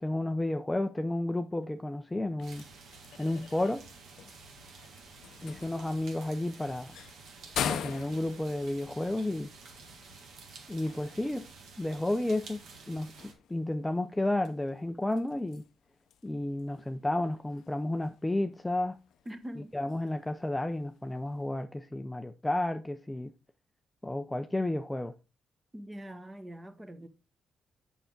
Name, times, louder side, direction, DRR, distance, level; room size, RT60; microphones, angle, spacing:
voice 1, 0.0-2.6 3.2-3.9 5.4-6.9 7.6-9.5 10.7-11.5 11.8-15.6 16.2-19.0 19.7-23.3 24.0-25.1, left 1 dB, 10° left, 0.5 m, -32 dB
sound 1, 2.1-21.6, left 9 dB, 80° left, 0.6 m, -44 dB
sound 2, 2.4-13.3, right 4 dB, 75° right, 1.7 m, -51 dB
voice 2, 19.3-19.8 25.7-27.1, equal, 15° right, 1.1 m, -43 dB
6.8 x 5.8 x 3.7 m
cardioid pair, 100°, 0 cm